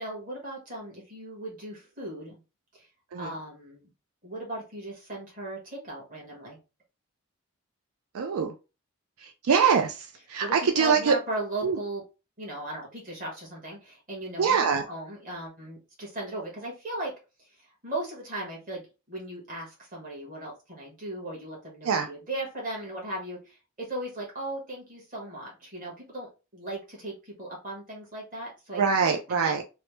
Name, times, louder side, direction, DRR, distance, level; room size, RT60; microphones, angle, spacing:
voice 1, 0.0-2.4 2.7-2.9 3.2-3.9 4.2-6.6 10.4-12.0 12.4-14.5 14.9-17.1 17.6-29.6, right 1 dB, 40° right, -3 dB, 1.3 m, -37 dB
voice 2, 8.1-8.5 9.2-11.1 11.6-11.8 14.4-14.9 21.8-22.1 28.8-29.6, right 6 dB, 80° right, 4 dB, 0.4 m, -24 dB
3.1 x 2.0 x 3.1 m, 0.30 s
head